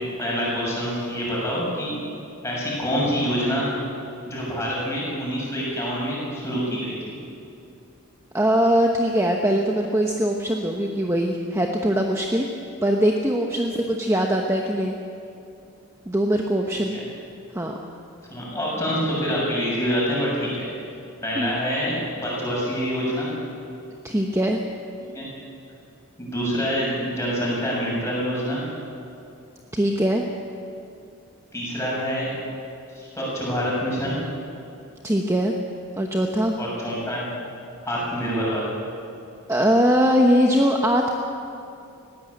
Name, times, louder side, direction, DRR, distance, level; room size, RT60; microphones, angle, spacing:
voice 1, 0.2-2.0 2.4-3.7 4.3-7.0 16.9-17.0 18.3-20.7 21.2-23.3 25.1-25.3 26.2-28.6 31.5-32.3 32.9-34.2 36.6-37.3 37.9-38.7, equal, 10° left, -5 dB, 7.1 m, -26 dB
voice 2, 8.3-12.5 12.8-15.0 16.1-16.9 17.5-17.8 21.3-21.5 24.0-24.6 29.7-30.2 35.0-35.5 36.0-36.5 39.5-41.1, equal, 15° right, 1 dB, 1.0 m, -21 dB
20.0 x 16.0 x 8.6 m, 2.6 s
head